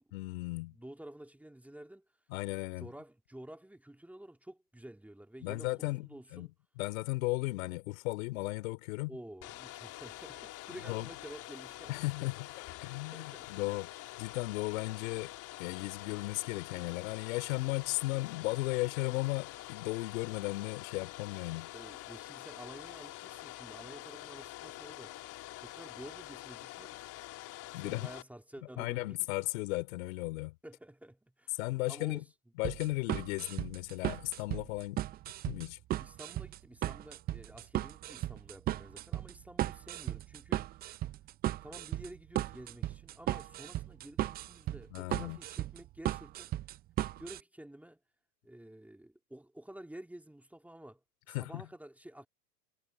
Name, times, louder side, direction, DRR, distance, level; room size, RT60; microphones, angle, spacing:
voice 1, 0.1-0.8 2.3-2.9 5.4-6.5 6.8-9.1 10.7-11.1 11.9-12.5 12.8-13.9 14.2-15.3 15.6-21.7 27.7-28.0 28.8-30.6 31.6-32.2 32.6-35.0 35.4-35.8 44.9-45.4 51.3-51.6, left 22 dB, 60° left, 3.6 m, -35 dB
voice 2, 0.7-2.0 2.8-6.5 9.1-12.1 12.8-13.5 21.7-25.2 25.6-27.0 27.7-29.2 30.6-31.6 31.8-32.3 36.0-40.7 41.6-46.6 47.2-48.0 48.4-51.0 51.3-52.3, right 1 dB, 5° right, 2.7 m, -51 dB
Domestic sounds home sounds, 9.4-28.2, left 17 dB, 45° left, 3.4 m, -46 dB
sound 1, 32.6-47.4, right 14 dB, 20° right, 0.5 m, -36 dB
hypercardioid pair, 120°, 45 cm